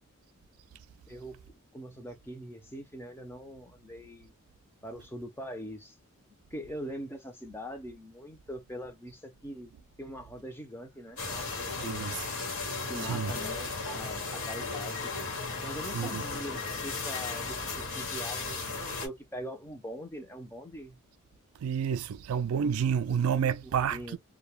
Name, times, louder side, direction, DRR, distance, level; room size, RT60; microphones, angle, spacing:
voice 1, 1.1-4.3 4.8-6.0 6.5-9.7 10.0-12.0 12.9-15.2 15.6-21.0 23.6-24.2, equal, 10° left, 0.5 m, -42 dB
sound 1, 11.2-19.1, left 4 dB, 85° left, 1.2 m, -35 dB
voice 2, 11.8-12.2 13.0-13.3 15.9-16.2 21.6-24.2, right 7 dB, 75° right, 0.3 m, -29 dB
2.2 x 2.1 x 3.1 m
head